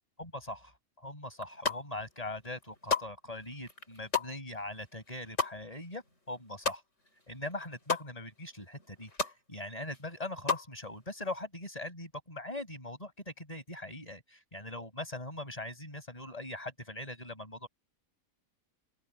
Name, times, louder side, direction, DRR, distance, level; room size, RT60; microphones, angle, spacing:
voice 1, 0.2-6.8 7.3-17.7, left 1 dB, 25° left, 5.7 m, -41 dB
sound 1, 1.3-2.1 2.4-7.2 7.5-8.1 8.5-8.6 8.8-9.4 9.8-10.7, left 5 dB, 60° left, 6.8 m, -34 dB
open air
omnidirectional pair, 1.4 m